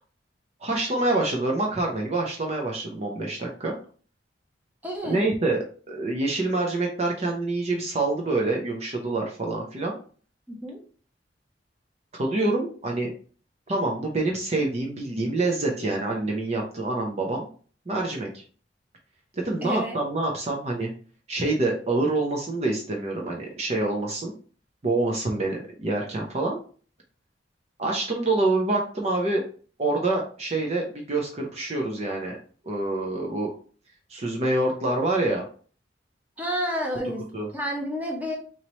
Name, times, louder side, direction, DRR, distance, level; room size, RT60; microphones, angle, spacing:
voice 1, 0.6-3.8 5.0-10.0 12.1-13.1 13.7-17.5 17.9-18.4 19.4-20.9 21.3-24.3 24.8-26.6 27.8-29.4 29.8-32.4 32.6-33.5 34.1-35.4 37.3-37.5, right 2 dB, 35° right, 0 dB, 0.6 m, -26 dB
voice 2, 4.8-5.3 10.5-10.8 19.6-20.0 36.4-37.2 37.5-38.4, equal, 10° right, 0 dB, 0.8 m, -30 dB
4.0 x 3.0 x 3.0 m, 0.42 s
head